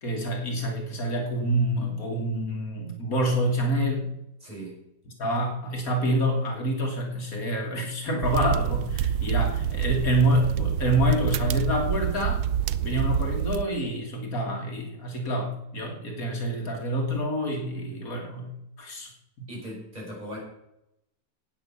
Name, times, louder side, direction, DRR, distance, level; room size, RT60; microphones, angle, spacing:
voice 1, 0.0-4.1 5.2-12.4 12.8-18.5 18.8-19.1 19.4-19.5, right 1 dB, 65° left, 2 dB, 2.3 m, -27 dB
voice 2, 4.4-4.8 19.5-20.4, equal, 25° right, -4 dB, 6.0 m, -38 dB
sound 1, 8.2-13.6, right 9 dB, 90° right, 1.1 m, -27 dB
10.0 x 8.9 x 6.9 m, 0.82 s
omnidirectional pair, 1.6 m